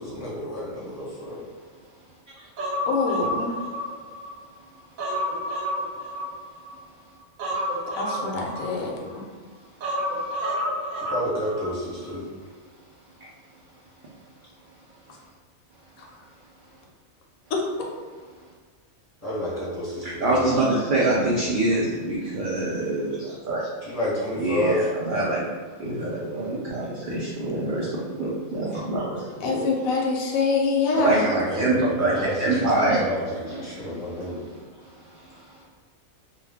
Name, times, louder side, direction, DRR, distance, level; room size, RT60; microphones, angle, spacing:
voice 1, 0.0-1.4 11.1-12.3 19.2-20.5 21.1-21.8 23.8-24.8 31.1-34.3, equal, 15° left, -9 dB, 0.9 m, -30 dB
Human voice, 2.6-4.4 4.7-6.7 7.4-9.2 9.8-11.7 12.0-12.1, equal, 85° right, 1.1 m, -29 dB
voice 2, 2.9-3.6 8.0-9.2 16.0-16.1 17.5-17.6 29.4-31.3, left 4 dB, 80° left, -1 dB, 1.0 m, -25 dB
voice 3, 20.0-23.7 24.4-25.5 25.8-29.7 31.0-33.1 35.2-35.3, right 2 dB, 65° right, -6 dB, 0.5 m, -25 dB
2.3 x 2.2 x 3.3 m, 1.5 s
omnidirectional pair, 1.4 m